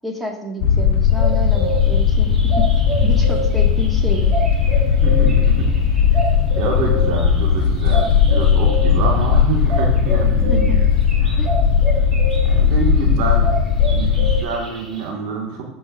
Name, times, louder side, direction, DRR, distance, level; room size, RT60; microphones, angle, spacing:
voice 1, 0.0-2.7 3.0-4.3 10.5-10.8 11.4-11.6, right 1 dB, 5° right, 0 dB, 1.8 m, -29 dB
sound 1, 0.6-14.4, left 7 dB, 65° left, 0.9 m, -17 dB
sound 2, 1.1-12.6 12.9-15.0, right 1 dB, 25° right, 3.0 m, -29 dB
voice 2, 5.0-5.7 6.6-10.7 11.2-11.5 12.5-13.5 13.9-15.6, right 4 dB, 65° right, -1 dB, 1.8 m, -26 dB
15.0 x 5.4 x 2.6 m, 0.99 s
hypercardioid pair, 85°, 0 cm